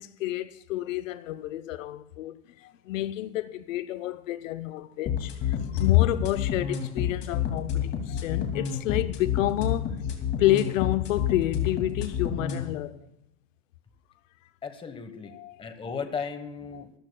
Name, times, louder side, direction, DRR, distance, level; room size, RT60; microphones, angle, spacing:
voice 1, 0.0-9.9 10.4-13.1 15.3-15.6 16.7-16.8, left 15 dB, 90° left, 0.8 m, -29 dB
sound 1, 5.1-12.6, left 8 dB, 30° left, 2.4 m, -29 dB
voice 2, 14.6-15.3 15.6-16.9, left 5 dB, 15° left, 1.2 m, -35 dB
26.5 x 13.5 x 2.3 m
supercardioid pair, 150°, 38 cm